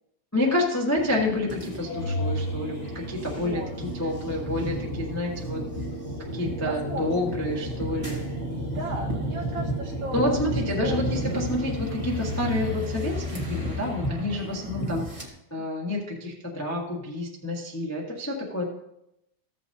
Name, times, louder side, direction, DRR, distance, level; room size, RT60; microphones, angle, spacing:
voice 1, 0.3-5.6 6.3-8.2 8.5-8.8 10.1-15.2 15.5-18.6, left 1 dB, 15° left, -2 dB, 0.5 m, -29 dB
sound 1, 1.0-15.3, equal, 15° right, 1.4 m, -33 dB
Organ, 1.9-12.9, equal, 75° left, 2.3 m, -37 dB
voice 2, 3.4-3.7 6.6-7.3 8.7-10.4 10.8-11.5 14.6-14.9, right 1 dB, 50° right, -1 dB, 2.2 m, -36 dB
15.5 x 7.4 x 2.8 m, 0.84 s
omnidirectional pair, 3.3 m